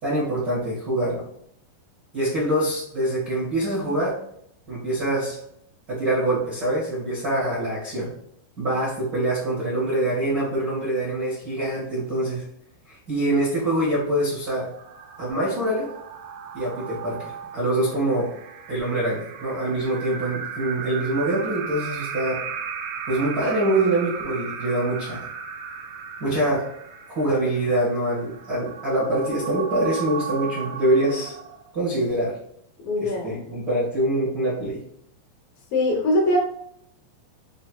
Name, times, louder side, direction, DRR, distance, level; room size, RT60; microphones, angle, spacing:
voice 1, 0.0-1.2 2.1-4.1 4.7-5.4 5.9-8.1 8.6-12.4 12.9-14.7 15.2-15.9 16.5-18.3 18.7-22.4 23.1-25.2 26.2-26.7 27.1-31.3 31.7-32.3 33.0-34.8, right 1 dB, 55° right, -9 dB, 1.0 m, -24 dB
sound 1, 14.5-31.9, right 7 dB, 90° right, 2.5 m, -36 dB
voice 2, 32.8-33.4 35.7-36.4, left 1 dB, 75° left, 0 dB, 2.3 m, -22 dB
6.2 x 2.9 x 2.3 m, 0.72 s
omnidirectional pair, 4.2 m